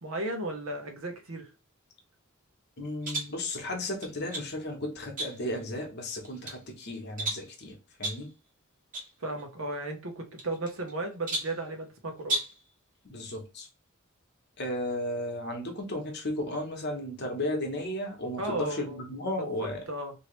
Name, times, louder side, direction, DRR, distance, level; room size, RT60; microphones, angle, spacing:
voice 1, 0.0-1.5 9.2-12.4 18.4-19.0 19.9-20.1, right 2 dB, 70° right, 0.9 m, -35 dB
voice 2, 2.8-8.3 13.1-13.7 14.6-19.8, left 1 dB, 50° left, 1.0 m, -34 dB
sound 1, 3.0-3.4 4.0-4.5 5.2-5.6 6.1-6.6 7.2-7.5 8.0-8.3 8.9-9.1 9.4-9.5 10.4-10.9 11.3-11.6 12.2-12.6, right 1 dB, 40° right, 1.2 m, -34 dB
3.0 x 2.7 x 3.1 m
head